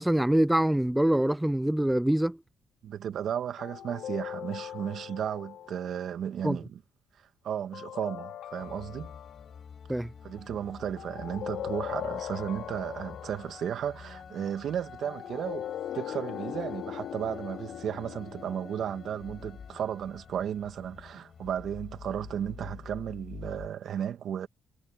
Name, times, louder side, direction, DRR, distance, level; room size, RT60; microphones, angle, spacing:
voice 1, 0.0-2.4 6.4-6.6 9.9-10.1, right 1 dB, 5° right, 0.4 m, -24 dB
voice 2, 2.8-6.8 7.4-9.1 10.2-15.7 15.9-24.5, right 9 dB, 65° right, 2.2 m, -34 dB
sound 1, 3.6-6.1 7.7-9.6 11.0-13.7 15.0-19.5, left 10 dB, 75° left, 2.8 m, -40 dB
sound 2, 8.6-23.7, left 6 dB, 50° left, 7.4 m, -48 dB
cardioid pair, 90°, 0 cm